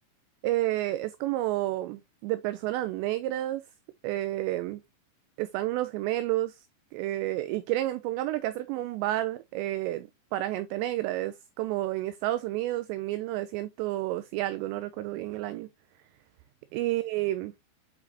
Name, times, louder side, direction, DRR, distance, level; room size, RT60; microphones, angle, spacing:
voice 1, 0.4-3.6 4.0-4.8 5.4-6.7 6.9-15.7 16.7-17.5, right 15 dB, 85° right, 2.6 m, -30 dB
8.3 x 5.1 x 2.6 m
omnidirectional pair, 5.4 m